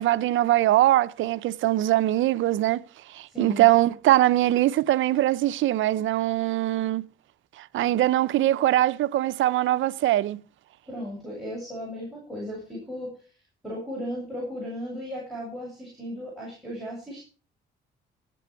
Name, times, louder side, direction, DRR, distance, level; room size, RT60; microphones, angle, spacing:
voice 1, 0.0-2.8 3.1-7.0 7.6-10.4, right 14 dB, 75° right, 0.6 m, -22 dB
voice 2, 3.3-3.7 10.9-13.1 13.6-17.2, equal, ahead, 7.7 m, -35 dB
16.0 x 8.4 x 4.6 m
cardioid pair, 90°, 20 cm